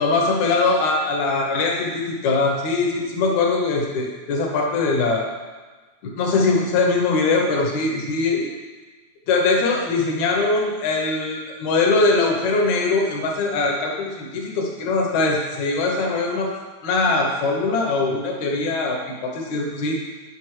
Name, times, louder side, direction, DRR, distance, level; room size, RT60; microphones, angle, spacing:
voice 1, 0.0-5.3 6.0-8.5 9.3-16.5 16.8-20.0, left 3 dB, 70° left, 0 dB, 1.9 m, -21 dB
9.5 x 5.3 x 3.2 m, 1.4 s
omnidirectional pair, 4.1 m